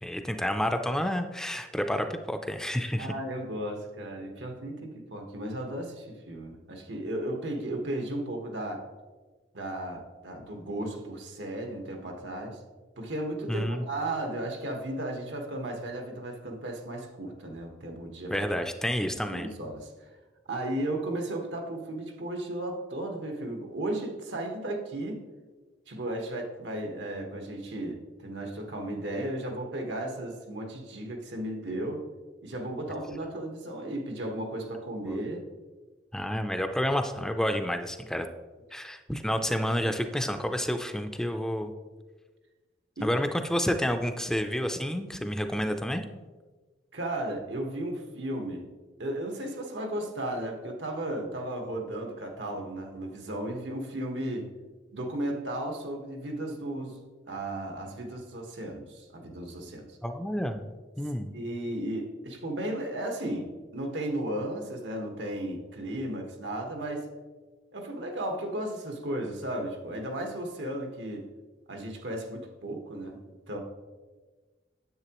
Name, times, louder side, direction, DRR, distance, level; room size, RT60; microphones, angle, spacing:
voice 1, 0.0-3.1 13.5-13.8 18.3-19.5 35.1-35.2 36.1-38.3 38.7-41.7 43.0-46.0 60.0-60.7 61.0-61.3, equal, 5° left, 6 dB, 0.4 m, -29 dB
voice 2, 3.0-8.8 9.5-12.6 13.0-18.4 19.3-19.9 20.5-25.2 25.9-32.1 32.4-35.4 43.0-43.1 46.9-48.7 49.0-54.5 54.9-57.0 57.3-60.0 61.3-67.1 67.7-71.3 71.7-73.2 73.5-73.6, right 1 dB, 90° right, 3 dB, 1.3 m, -35 dB
9.7 x 7.6 x 3.0 m, 1.3 s
head